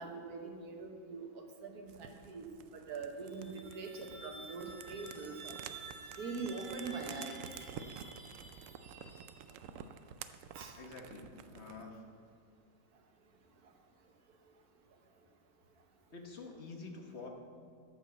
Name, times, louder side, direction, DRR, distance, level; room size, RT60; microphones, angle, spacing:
voice 1, 0.0-2.5 2.7-5.5 6.2-7.4 10.5-10.8, right 4 dB, 60° right, 3 dB, 1.7 m, -43 dB
sound 1, 1.9-11.9, right 8 dB, 85° right, 0.7 m, -51 dB
sound 2, 3.2-9.8, right 3 dB, 30° right, 0.6 m, -51 dB
voice 2, 10.8-12.0 16.1-17.3, left 4 dB, 40° left, 2 dB, 1.3 m, -48 dB
12.5 x 5.8 x 7.1 m, 2.1 s
omnidirectional pair, 1.9 m